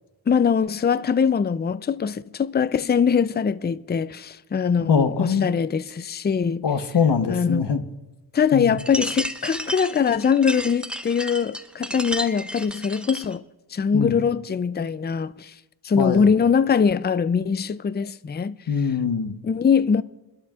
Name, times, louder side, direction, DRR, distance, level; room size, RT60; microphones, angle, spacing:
voice 1, 0.3-6.7 7.3-7.7 8.3-13.4 13.7-15.5 15.8-18.5 19.4-20.0, left 6 dB, 25° left, 0.4 m, -22 dB
voice 2, 4.9-5.5 6.6-7.8 8.5-8.7 13.9-14.1 16.0-16.3 18.7-19.3, left 6 dB, 65° left, 1.1 m, -22 dB
sound 1, 8.8-13.4, equal, ahead, 0.8 m, -32 dB
27.5 x 12.0 x 2.4 m
wide cardioid pair, 70°, 44 cm